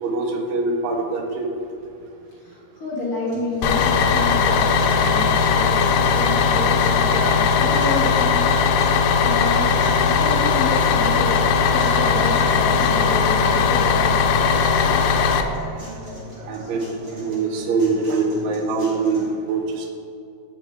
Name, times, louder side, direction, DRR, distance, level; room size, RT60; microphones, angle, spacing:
voice 1, 0.0-1.5 16.5-16.8 17.1-19.9, right 4 dB, 80° right, 3 dB, 2.7 m, -23 dB
voice 2, 2.4-8.5 9.2-9.7 10.0-11.4 11.6-14.1 14.3-14.7, left 2 dB, 60° left, -4 dB, 1.4 m, -29 dB
sound 1, 3.3-19.3, equal, 30° right, 2.2 m, -40 dB
Bus, 3.6-15.4, left 5 dB, 90° left, 2.6 m, -18 dB
8.8 x 6.0 x 4.7 m, 2.6 s
omnidirectional pair, 4.3 m